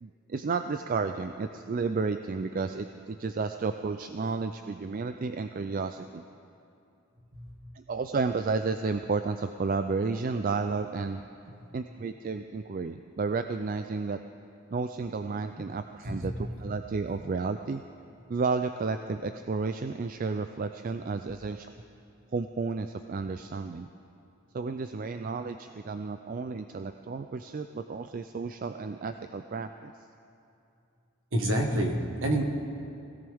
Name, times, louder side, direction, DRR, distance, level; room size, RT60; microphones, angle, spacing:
voice 1, 0.0-6.2 7.7-11.2 11.7-14.2 14.7-17.8 18.3-21.7 22.3-23.9 24.5-29.9, right 4 dB, 40° right, 8 dB, 0.3 m, -32 dB
voice 2, 7.3-7.7 16.0-16.7 31.3-32.4, right 1 dB, 60° right, 2 dB, 1.6 m, -29 dB
20.5 x 17.0 x 3.6 m, 2.6 s
head